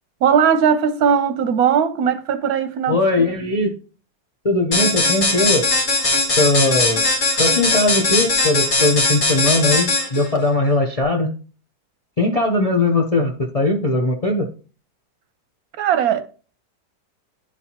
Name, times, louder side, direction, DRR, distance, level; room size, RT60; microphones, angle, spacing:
voice 1, 0.2-3.0 3.4-3.5 15.8-16.2, right 7 dB, 70° right, 1.0 m, -18 dB
voice 2, 2.9-3.7 4.4-5.7 6.4-7.1 7.4-11.3 12.2-14.5, left 2 dB, 45° left, 0.5 m, -19 dB
sound 1, 4.7-10.3, left 2 dB, 75° left, 2.5 m, -19 dB
11.0 x 4.2 x 2.9 m
omnidirectional pair, 1.7 m